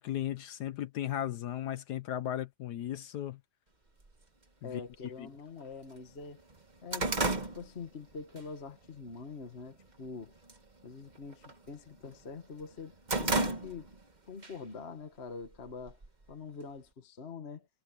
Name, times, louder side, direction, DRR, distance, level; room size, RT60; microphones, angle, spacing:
voice 1, 0.0-3.4 4.6-4.8 5.2-5.3, left 12 dB, 65° left, 1.1 m, -36 dB
sound 1, 4.1-4.2 5.1-5.2 5.6-5.7 6.0-8.5 8.8-9.2 9.6-10.1 10.4-10.7 11.0-12.2 12.6-14.1 14.4-14.6 15.4-16.3, right 2 dB, 25° right, 1.5 m, -33 dB
voice 2, 4.6-6.4 6.8-7.1 7.4-10.4 10.8-13.9 14.2-16.0 16.3-17.7, left 5 dB, 35° left, 1.7 m, -45 dB
omnidirectional pair, 2.2 m